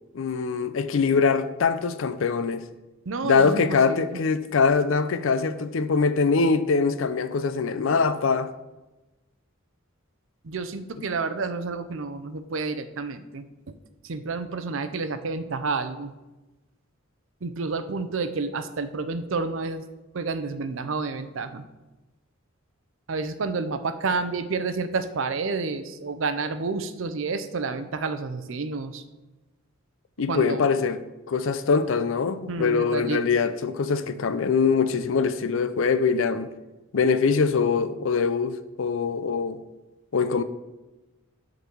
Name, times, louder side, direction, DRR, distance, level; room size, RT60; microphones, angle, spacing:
voice 1, 0.1-2.6 3.2-8.5 30.2-31.0 31.3-36.5 36.9-39.6 40.1-40.4, left 5 dB, 65° left, 0.5 m, -23 dB
voice 2, 3.1-4.2 10.4-13.4 14.0-16.1 17.4-19.8 20.1-21.6 23.1-29.0 30.3-30.6 32.5-33.2, right 4 dB, 65° right, 0.6 m, -30 dB
8.4 x 4.0 x 6.0 m
head